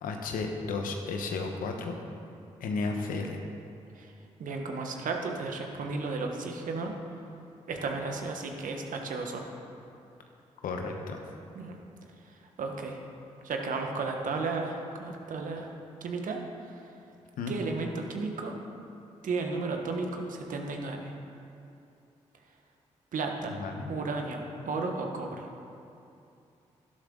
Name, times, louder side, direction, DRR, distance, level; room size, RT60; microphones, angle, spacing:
voice 1, 0.0-2.0 2.6-3.4 10.6-11.2 17.4-17.5 23.5-24.0, left 4 dB, 80° left, 3 dB, 1.2 m, -33 dB
voice 2, 4.4-6.9 7.7-9.5 11.5-11.8 12.2-13.0 13.4-16.9 17.5-18.5 19.2-21.1 23.1-23.6 23.9-25.5, right 3 dB, 70° right, 2 dB, 1.5 m, -34 dB
12.0 x 12.0 x 3.9 m, 2.7 s
supercardioid pair, 45°, 14 cm